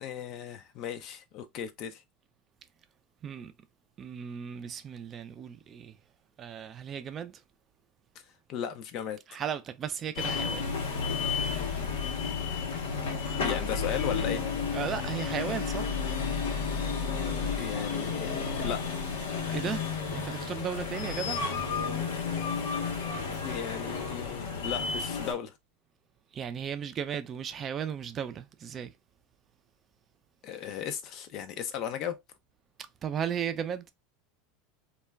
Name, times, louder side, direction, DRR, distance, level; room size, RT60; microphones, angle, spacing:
voice 1, 0.0-2.0 8.5-9.2 13.4-14.4 17.6-19.0 23.4-25.5 30.4-32.2, left 9 dB, 55° left, 0.4 m, -36 dB
voice 2, 3.2-3.5 4.0-6.0 6.4-7.4 9.3-10.7 14.7-15.9 19.5-19.9 20.1-21.4 26.3-28.9 33.0-33.8, right 8 dB, 35° right, 0.4 m, -35 dB
sound 1, 10.2-25.3, left 5 dB, 85° left, 0.9 m, -32 dB
2.3 x 2.1 x 3.3 m
supercardioid pair, 105°, 0 cm